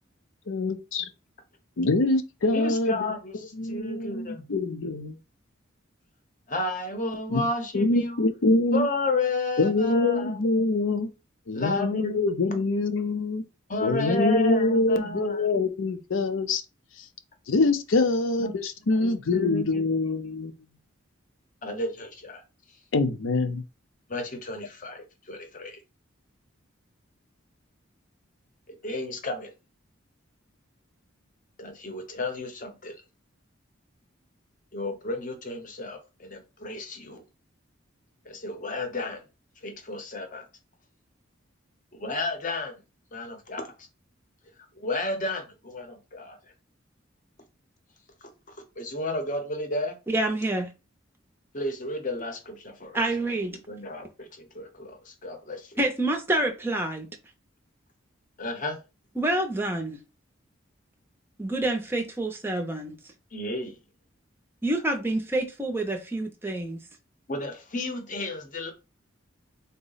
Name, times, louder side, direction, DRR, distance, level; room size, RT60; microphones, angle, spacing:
voice 1, 0.5-1.1 1.8-3.0 3.6-5.2 7.3-7.4 7.7-8.9 9.6-11.1 11.5-13.4 13.8-16.6 17.0-17.1 17.5-20.5 22.9-23.6, left 2 dB, 75° left, 0.5 m, -25 dB
voice 2, 2.5-4.4 6.5-8.2 8.7-10.4 11.5-12.3 13.7-15.5 18.4-18.5 19.0-19.9 21.6-22.4 24.1-25.8 28.7-29.5 31.6-33.0 34.7-37.2 38.3-39.2 39.6-40.5 41.9-42.7 43.1-43.9 44.8-46.4 48.5-49.9 51.5-53.0 53.5-55.7 58.4-58.8 63.3-63.8 67.3-68.7, left 2 dB, 40° left, 0.7 m, -32 dB
voice 3, 50.1-50.7 52.9-53.6 55.8-57.1 59.2-60.0 61.4-63.0 64.6-66.8, right 2 dB, 10° right, 0.5 m, -27 dB
3.9 x 2.1 x 3.9 m
head